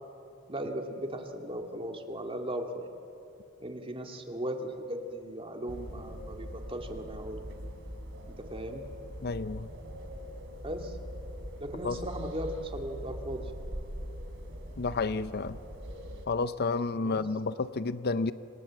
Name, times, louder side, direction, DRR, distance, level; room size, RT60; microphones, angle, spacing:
voice 1, 0.5-2.7 3.6-7.4 8.4-8.8 10.6-11.0 11.6-13.4 16.9-17.2, right 1 dB, 25° right, 2.3 m, -37 dB
sound 1, 5.7-16.3, equal, 65° right, 3.4 m, -42 dB
voice 2, 9.2-9.7 11.8-12.0 14.8-15.6 16.3-18.3, left 3 dB, 50° left, 0.6 m, -30 dB
28.0 x 26.0 x 7.5 m
head